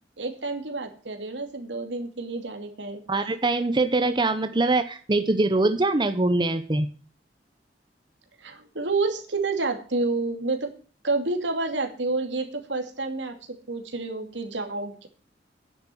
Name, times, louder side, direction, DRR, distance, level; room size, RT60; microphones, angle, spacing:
voice 1, 0.2-3.0 8.4-10.7 11.0-15.1, right 3 dB, 80° right, 5 dB, 2.5 m, -29 dB
voice 2, 3.1-6.9, right 2 dB, 25° right, 9 dB, 0.8 m, -23 dB
10.5 x 7.5 x 9.1 m, 0.41 s
head